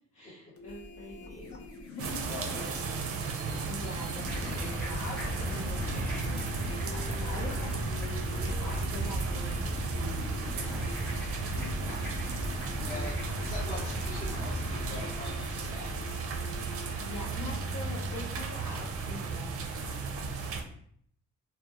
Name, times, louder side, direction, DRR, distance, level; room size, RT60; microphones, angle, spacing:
voice 1, 0.1-1.6 1.8-2.2 3.7-10.9 11.4-12.4 17.0-19.6, left 1 dB, 65° left, -6 dB, 0.8 m, -44 dB
sound 1, 0.6-17.2, left 2 dB, 50° left, 0.5 m, -46 dB
sound 2, 2.0-20.6, right 4 dB, 50° right, 0.5 m, -36 dB
voice 2, 2.3-3.0 12.8-15.9, left 1 dB, 30° left, -10 dB, 1.0 m, -42 dB
sound 3, 4.2-19.6, equal, 5° left, 0.9 m, -37 dB
2.2 x 2.1 x 2.8 m, 0.63 s
cardioid pair, 90°, 30 cm